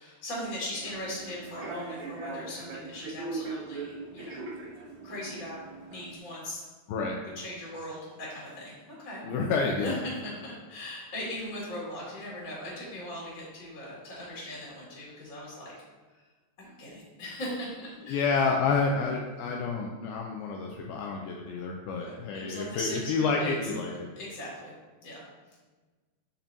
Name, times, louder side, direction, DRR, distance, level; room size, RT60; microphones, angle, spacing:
voice 1, 0.0-4.4 5.0-5.6 5.9-6.6 7.2-8.7 9.0-9.2 9.8-15.7 16.1-16.2 16.6-18.2 22.0-23.1 23.4-23.5 24.2-24.7 25.0-25.2, left 1 dB, 35° left, -6 dB, 2.0 m, -39 dB
Human voice / Subway metro underground, 0.7-6.2, right 3 dB, 65° right, 2.0 m, -40 dB
voice 2, 9.2-10.0 18.1-24.1, left 4 dB, 90° left, 1 dB, 2.1 m, -29 dB
8.6 x 5.8 x 2.7 m, 1.3 s
omnidirectional pair, 4.9 m